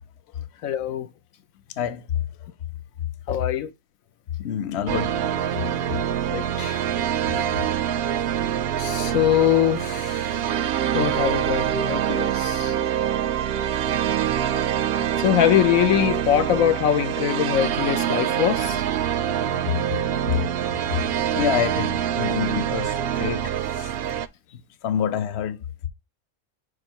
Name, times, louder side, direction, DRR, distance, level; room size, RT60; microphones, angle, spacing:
voice 1, 0.6-1.1 3.3-3.7 6.3-6.8 7.3-7.4 8.8-10.4 10.9-12.7 15.2-18.8, left 10 dB, 85° left, 1.1 m, -23 dB
voice 2, 1.8-2.1 4.4-5.2 13.7-13.8 14.8-15.1 20.3-20.5 21.3-23.9 24.8-25.6, left 9 dB, 60° left, 0.9 m, -27 dB
sound 1, 4.9-24.3, right 10 dB, 65° right, 0.6 m, -25 dB
5.2 x 4.5 x 4.4 m
omnidirectional pair, 1.4 m